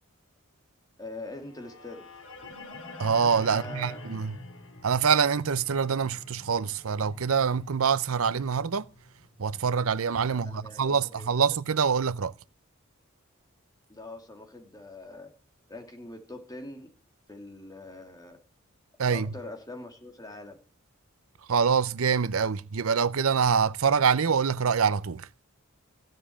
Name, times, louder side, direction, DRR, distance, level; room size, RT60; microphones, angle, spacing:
voice 1, 1.0-2.1 3.4-4.1 10.3-11.5 13.9-15.3 15.7-16.9 17.3-18.4 19.0-20.6, left 2 dB, 20° left, 2.7 m, -43 dB
sound 1, 1.4-9.5, left 2 dB, 75° left, 3.4 m, -46 dB
voice 2, 3.0-4.4 4.8-8.8 9.4-12.3 19.0-19.3 21.5-25.3, right 6 dB, 90° right, 0.6 m, -25 dB
15.0 x 7.5 x 8.6 m
head